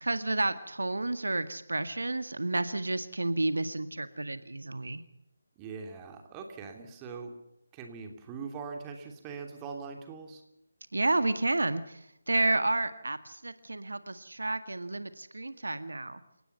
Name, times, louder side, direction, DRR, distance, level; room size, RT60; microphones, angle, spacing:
voice 1, 0.0-5.0 10.9-16.2, right 2 dB, 70° right, 11 dB, 1.8 m, -31 dB
voice 2, 5.6-7.3 7.7-10.4, right 5 dB, 15° right, 4 dB, 3.1 m, -42 dB
30.0 x 18.5 x 5.8 m, 0.84 s
figure-of-eight pair, 155°, 0 cm